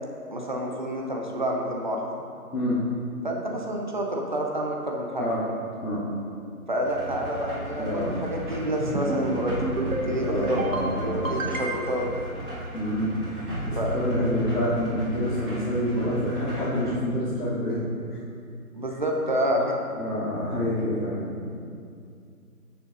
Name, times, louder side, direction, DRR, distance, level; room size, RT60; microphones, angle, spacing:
voice 1, 0.3-2.0 3.2-5.3 6.7-9.5 9.8-10.6 10.9-12.1 13.8-13.9 18.7-19.8, equal, 30° right, -1 dB, 0.7 m, -28 dB
voice 2, 2.5-2.8 5.2-5.5 5.8-6.0 7.8-8.2 10.2-11.5 12.7-17.8 18.1-18.2 19.9-21.6, equal, 75° left, -10 dB, 2.1 m, -28 dB
sound 1, 6.8-17.0, right 1 dB, 5° right, 1.4 m, -35 dB
sound 2, 8.8-9.3 9.6-10.1 10.4-10.9 11.2-12.0, right 2 dB, 60° right, 1.1 m, -30 dB
7.5 x 6.9 x 3.9 m, 2.3 s
figure-of-eight pair, 160°, 46 cm